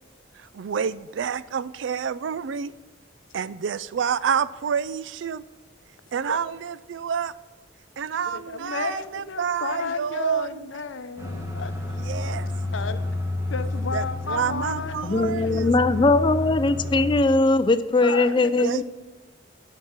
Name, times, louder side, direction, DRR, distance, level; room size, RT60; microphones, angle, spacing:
voice 1, 0.5-2.7 3.3-5.4 6.1-7.3 8.0-10.6 12.0-12.5 13.9-15.7 18.6-18.8, right 7 dB, 75° right, 17 dB, 0.4 m, -28 dB
voice 2, 8.3-12.0 12.7-13.0 13.5-15.0 15.3-15.7 16.2-16.3 18.0-18.8, left 5 dB, 85° left, 11 dB, 0.7 m, -33 dB
sound 1, 11.2-17.2, left 2 dB, 15° right, 1.6 m, -30 dB
voice 3, 15.0-18.8, left 2 dB, 25° left, 13 dB, 0.4 m, -20 dB
7.9 x 5.9 x 7.3 m, 1.3 s
head